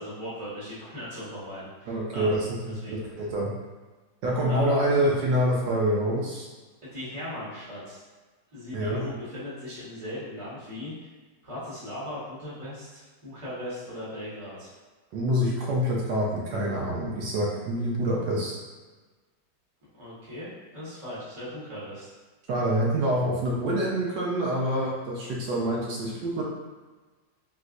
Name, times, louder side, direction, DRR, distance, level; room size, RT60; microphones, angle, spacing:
voice 1, 0.0-2.4 2.6-3.0 4.4-5.1 6.9-8.0 8.5-10.9 11.4-14.7 20.0-22.1, left 1 dB, 20° right, -10 dB, 1.1 m, -38 dB
voice 2, 1.9-3.5 4.2-6.5 8.7-9.1 15.1-18.6 22.5-26.4, equal, 80° right, -4 dB, 1.3 m, -26 dB
3.5 x 3.0 x 2.4 m, 1.3 s
omnidirectional pair, 2.0 m